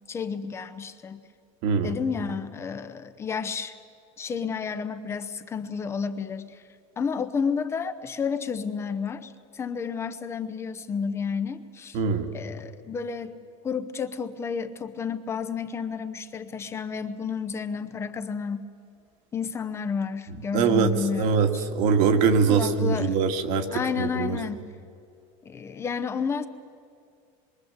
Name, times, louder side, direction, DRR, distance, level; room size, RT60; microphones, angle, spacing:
voice 1, 0.1-1.3 1.8-3.7 4.2-6.6 7.0-12.0 12.3-13.4 13.6-18.7 19.3-21.7 22.5-23.2 23.7-24.6 25.4-26.5, left 6 dB, 15° left, 9 dB, 0.8 m, -31 dB
voice 2, 1.6-1.9 11.9-12.3 20.5-21.5 21.7-24.4, right 5 dB, 50° right, 6 dB, 2.1 m, -22 dB
26.5 x 23.0 x 8.0 m, 2.4 s
cardioid pair, 175°, 16 cm